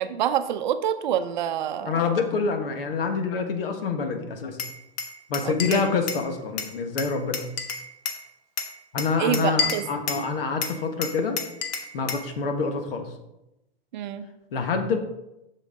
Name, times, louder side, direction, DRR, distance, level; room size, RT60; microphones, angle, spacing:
voice 1, 0.0-1.9 5.4-5.8 9.2-9.8 13.9-14.3, right 10 dB, 50° right, 10 dB, 0.7 m, -27 dB
voice 2, 1.8-4.6 5.3-7.4 8.9-11.4 11.9-13.1 14.5-15.0, left 4 dB, 65° left, 6 dB, 1.5 m, -26 dB
Glass, 4.6-6.3 6.6-8.2 8.6-10.3 10.6-12.3, left 5 dB, 30° left, 0.9 m, -30 dB
8.5 x 6.6 x 3.8 m, 0.91 s
hypercardioid pair, 145°, 31 cm